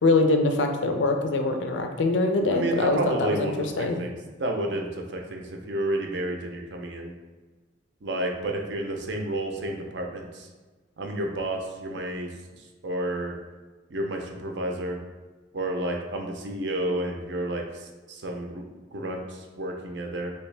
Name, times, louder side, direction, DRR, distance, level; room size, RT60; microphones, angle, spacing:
voice 1, 0.0-4.0, left 2 dB, 75° left, 5 dB, 0.4 m, -23 dB
voice 2, 2.5-4.1 4.4-7.1 8.0-10.5 11.0-12.3 12.8-13.3 13.9-15.0 15.5-18.7 18.9-20.3, right 1 dB, 65° right, 2 dB, 0.6 m, -30 dB
3.4 x 2.9 x 3.2 m, 1.3 s
head